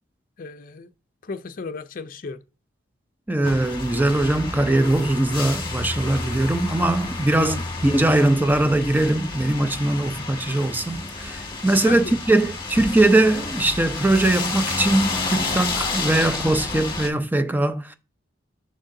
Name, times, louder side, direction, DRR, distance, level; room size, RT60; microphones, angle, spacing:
voice 1, 0.4-0.9 1.2-2.4 7.4-7.6 11.8-12.2, left 4 dB, 50° left, 0.5 m, -34 dB
voice 2, 3.3-18.0, right 2 dB, 10° right, 0.5 m, -21 dB
sound 1, 3.4-17.1, left 3 dB, 25° left, 1.7 m, -30 dB
7.6 x 6.4 x 2.7 m
head